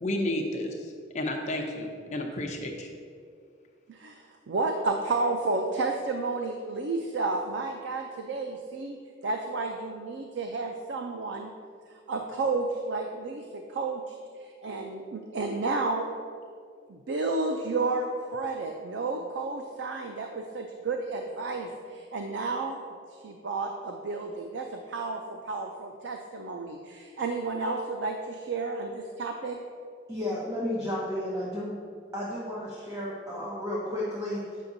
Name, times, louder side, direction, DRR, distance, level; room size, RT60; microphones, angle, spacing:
voice 1, 0.0-2.9, left 1 dB, 40° left, 2 dB, 0.5 m, -32 dB
voice 2, 3.9-9.0 9.2-11.5 12.1-16.1 16.9-22.8 23.2-29.6, right 3 dB, 75° right, 3 dB, 0.4 m, -31 dB
voice 3, 30.1-31.8 32.1-34.6, left 1 dB, 15° right, -6 dB, 0.8 m, -32 dB
8.3 x 5.8 x 2.6 m, 2.2 s
head